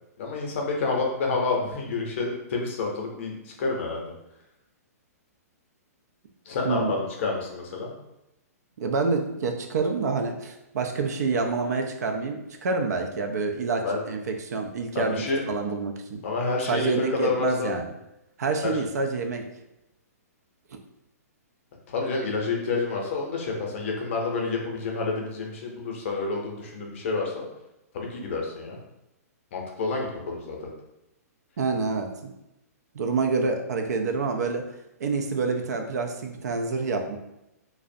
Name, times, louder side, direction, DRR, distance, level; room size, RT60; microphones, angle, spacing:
voice 1, 0.2-4.1 6.5-7.9 13.8-14.0 14.9-15.4 16.2-17.7 18.6-18.7 21.9-27.5 27.9-28.8 29.5-30.7, left 3 dB, 50° left, 0 dB, 0.6 m, -29 dB
voice 2, 8.8-16.2 16.7-17.9 18.4-19.4 20.7-20.8 31.6-32.3 32.9-34.6 35.0-37.2, right 4 dB, 80° right, 4 dB, 0.4 m, -27 dB
2.4 x 2.0 x 2.6 m, 0.88 s
hypercardioid pair, 160°, 9 cm